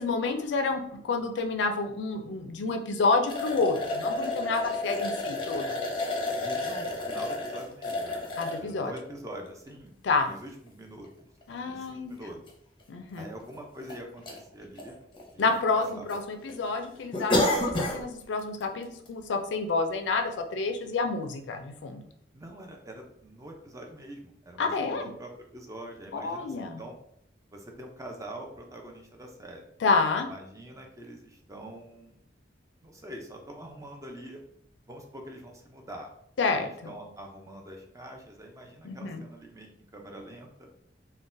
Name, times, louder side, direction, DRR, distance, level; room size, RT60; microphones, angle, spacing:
voice 1, 0.0-5.8 8.4-8.9 10.0-10.3 11.5-12.1 12.9-13.2 15.4-22.0 24.6-25.0 26.1-26.8 29.8-30.3 36.4-36.7 38.8-39.2, left 4 dB, 75° left, 6 dB, 0.4 m, -29 dB
sound 1, 3.3-8.6 9.3-9.4 11.0-11.1 11.4-11.5 12.5-12.6 12.8-12.9 13.5-14.0 14.3-14.4 14.8-15.5 15.8-16.2 16.5-16.6 17.1-18.0 18.4-18.6 19.1-19.2, left 2 dB, 30° left, 0.6 m, -30 dB
voice 2, 6.4-8.2 8.6-9.9 10.2-11.3 11.7-12.4 13.2-15.0 15.3-16.2 22.3-27.0 27.5-29.7 30.3-32.2 32.8-34.4 34.9-36.1 36.5-40.7, right 1 dB, 20° right, 2 dB, 0.5 m, -44 dB
3.7 x 2.2 x 2.5 m, 0.70 s
head